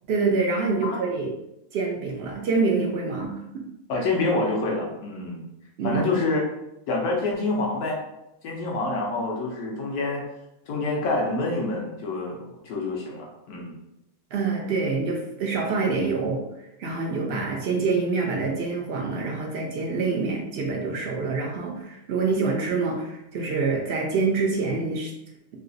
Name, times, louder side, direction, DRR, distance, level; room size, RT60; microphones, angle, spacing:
voice 1, 0.1-1.3 1.7-3.6 5.8-6.0 14.3-16.4 16.8-25.1, right 4 dB, 65° right, 0 dB, 0.6 m, -26 dB
voice 2, 3.9-5.4 5.8-6.4 6.9-8.0 8.4-10.2 10.7-13.7 17.2-17.4, left 2 dB, 85° left, -1 dB, 1.3 m, -27 dB
3.2 x 2.8 x 2.6 m, 0.87 s
omnidirectional pair, 1.6 m